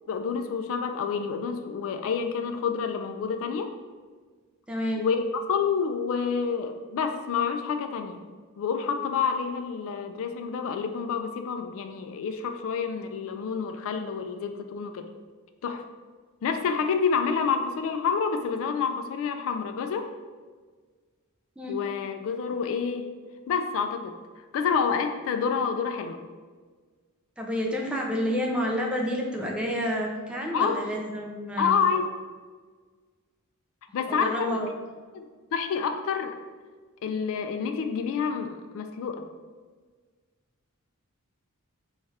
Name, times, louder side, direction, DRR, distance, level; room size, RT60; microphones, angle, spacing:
voice 1, 0.1-3.7 5.0-5.2 5.5-8.2 8.6-15.1 15.6-15.8 16.4-20.1 21.7-23.1 23.5-26.2 30.5-30.8 31.6-32.1 33.9-34.6 35.1-35.3 35.5-36.3 37.0-39.2, left 6 dB, 65° left, 6 dB, 0.3 m, -28 dB
voice 2, 4.7-5.0 21.6-21.8 27.4-32.0 33.9-34.7, equal, 5° right, -1 dB, 0.5 m, -29 dB
3.2 x 2.4 x 4.1 m, 1.5 s
head